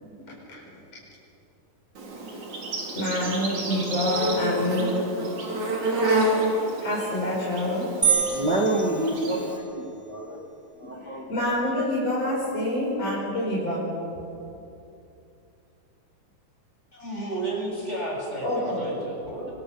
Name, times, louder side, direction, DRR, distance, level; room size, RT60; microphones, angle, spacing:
voice 1, 0.5-0.8 2.0-2.1 2.9-5.0 6.8-7.9 10.8-13.8 18.4-18.9 19.4-19.5, left 1 dB, 40° left, -6 dB, 6.2 m, -27 dB
Insect, 2.0-9.6, right 1 dB, 55° right, 4.6 m, -29 dB
sound 1, 8.0-9.8, right 7 dB, 5° right, 6.5 m, -27 dB
voice 2, 8.3-10.4 10.8-11.3, right 1 dB, 35° right, -2 dB, 1.9 m, -27 dB
voice 3, 16.9-19.5, right 1 dB, 15° left, -2 dB, 7.3 m, -32 dB
26.5 x 25.5 x 6.8 m, 2.7 s
omnidirectional pair, 4.2 m